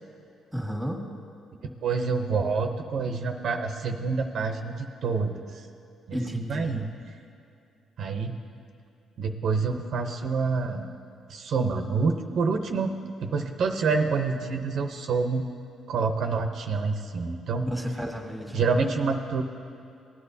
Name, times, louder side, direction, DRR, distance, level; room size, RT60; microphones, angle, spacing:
voice 1, 0.5-1.0 6.1-6.8 17.6-18.6, equal, ahead, 1 dB, 1.6 m, -32 dB
voice 2, 1.8-5.7 6.1-6.9 8.0-8.3 9.2-10.9 11.3-12.9 13.2-15.4 15.9-17.7 18.5-19.4, right 4 dB, 65° right, 4 dB, 0.7 m, -27 dB
19.0 x 9.9 x 2.7 m, 2.6 s
cardioid pair, 90°, 0 cm